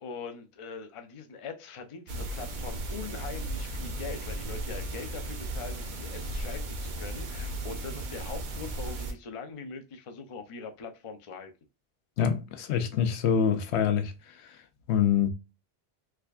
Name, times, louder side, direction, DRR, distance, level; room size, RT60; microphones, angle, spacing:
voice 1, 0.0-11.5, left 5 dB, 40° left, 0.5 m, -42 dB
sound 1, 2.1-9.1, right 1 dB, 50° right, 0.7 m, -35 dB
voice 2, 12.2-14.1 14.9-15.3, left 8 dB, 85° left, 0.9 m, -25 dB
3.5 x 3.3 x 2.3 m
omnidirectional pair, 1.1 m